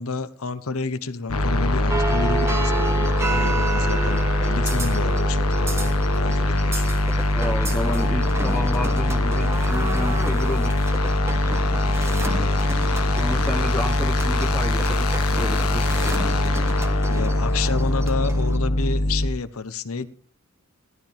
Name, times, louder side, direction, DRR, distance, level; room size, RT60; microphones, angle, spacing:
voice 1, 0.0-7.0 11.9-12.6 16.0-16.7 17.1-20.1, left 4 dB, 75° left, 1.0 m, -30 dB
sound 1, 1.3-19.3, left 1 dB, 90° left, 1.4 m, -22 dB
sound 2, 1.9-18.6, right 3 dB, 10° right, 1.4 m, -32 dB
voice 2, 7.3-10.8 13.2-16.2, left 1 dB, 10° left, 1.1 m, -31 dB
18.0 x 12.5 x 3.5 m
head